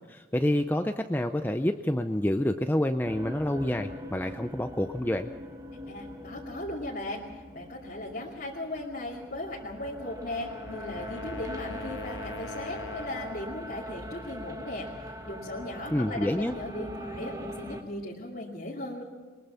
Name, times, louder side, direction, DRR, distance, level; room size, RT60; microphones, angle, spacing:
voice 1, 0.1-5.3 15.9-16.5, left 1 dB, 10° left, 7 dB, 0.5 m, -28 dB
sound 1, 3.0-17.8, equal, 20° right, 1.5 m, -41 dB
voice 2, 5.9-19.0, left 1 dB, 50° left, -5 dB, 2.5 m, -37 dB
Wind instrument woodwind instrument, 10.0-13.6, left 4 dB, 75° left, 0.5 m, -44 dB
22.5 x 21.0 x 5.7 m, 1.4 s
head